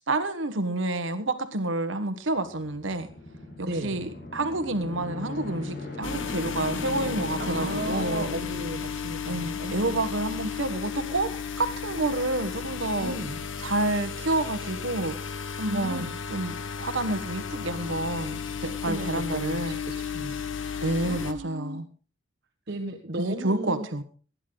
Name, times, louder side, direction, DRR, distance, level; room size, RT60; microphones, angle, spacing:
voice 1, 0.0-3.1 3.6-8.3 9.3-13.1 13.6-15.2 15.6-19.8 20.8-21.9 23.2-24.0, right 2 dB, 80° right, 10 dB, 1.3 m, -29 dB
sound 1, 2.5-9.4, left 2 dB, 55° left, 6.5 m, -39 dB
voice 2, 3.7-4.1 7.4-10.2 13.0-13.4 15.7-16.1 18.8-21.8 22.7-23.9, right 1 dB, 55° right, 1 dB, 1.6 m, -35 dB
sound 2, 6.0-21.3, left 6 dB, 90° left, 1.3 m, -34 dB
19.5 x 10.5 x 3.9 m, 0.37 s
head